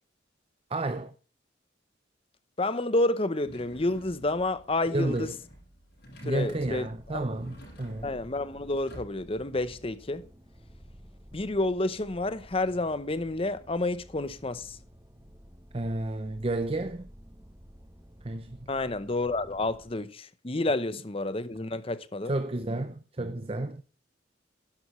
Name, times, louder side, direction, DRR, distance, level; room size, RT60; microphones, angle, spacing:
voice 1, 0.7-1.1 4.9-5.3 6.2-8.1 15.7-17.1 18.2-18.7 22.3-23.8, right 2 dB, 30° right, 0.6 m, -31 dB
voice 2, 2.6-5.3 6.2-7.2 8.0-10.3 11.3-14.8 18.7-22.3, left 2 dB, 30° left, 0.8 m, -29 dB
sound 1, 3.4-9.4, equal, 55° left, 7.0 m, -51 dB
sound 2, 6.2-19.9, equal, 15° right, 1.1 m, -52 dB
11.5 x 11.0 x 3.2 m
head